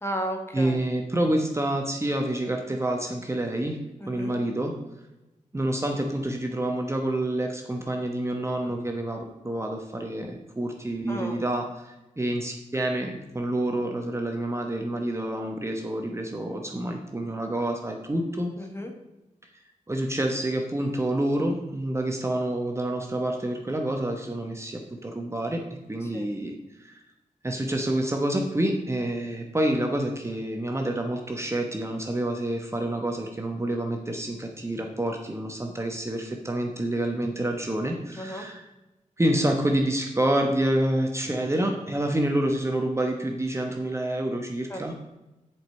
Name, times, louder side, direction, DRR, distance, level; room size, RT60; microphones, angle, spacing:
voice 1, 0.0-0.8 4.0-4.4 11.1-11.4 18.6-18.9 26.1-26.3 38.1-38.5 44.7-44.9, equal, 20° left, 3 dB, 1.7 m, -34 dB
voice 2, 0.5-3.8 4.1-4.7 5.5-18.5 19.9-25.6 25.9-27.0 27.4-38.7 39.2-44.9, right 1 dB, 20° right, 2 dB, 1.1 m, -28 dB
7.7 x 5.2 x 6.4 m, 1.0 s
wide cardioid pair, 75°, 13 cm